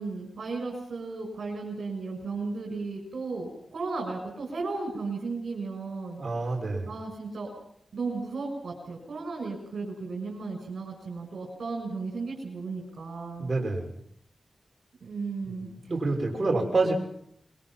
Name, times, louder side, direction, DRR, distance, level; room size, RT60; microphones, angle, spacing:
voice 1, 0.0-6.2 6.8-7.5 7.9-13.5 15.0-15.7, right 3 dB, 75° right, -1 dB, 6.6 m, -35 dB
voice 2, 6.2-6.9 13.4-13.9 15.4-16.9, right 3 dB, 50° right, -1 dB, 5.9 m, -28 dB
26.5 x 23.5 x 5.8 m, 0.71 s
wide cardioid pair, 90°, 0 cm